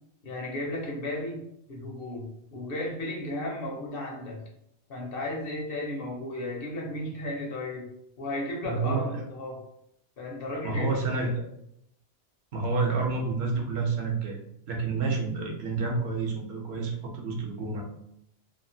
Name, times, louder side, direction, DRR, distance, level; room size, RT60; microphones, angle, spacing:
voice 1, 0.2-4.4 4.9-7.9 8.2-9.6 10.2-11.0, left 1 dB, 60° left, 0 dB, 0.9 m, -34 dB
voice 2, 8.6-9.2 10.6-11.4 12.5-14.4 14.7-17.8, right 4 dB, 70° right, 0 dB, 0.9 m, -29 dB
2.8 x 2.3 x 2.6 m, 0.76 s
omnidirectional pair, 1.1 m